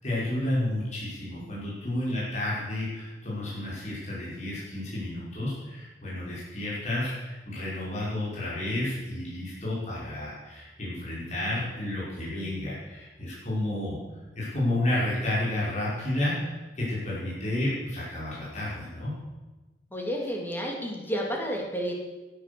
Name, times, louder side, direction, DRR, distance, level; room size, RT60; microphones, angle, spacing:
voice 1, 0.0-14.0 14.4-19.1, left 1 dB, 45° left, -8 dB, 5.3 m, -31 dB
voice 2, 19.9-21.9, equal, 10° left, 0 dB, 2.8 m, -31 dB
16.0 x 9.9 x 6.9 m, 1.2 s
head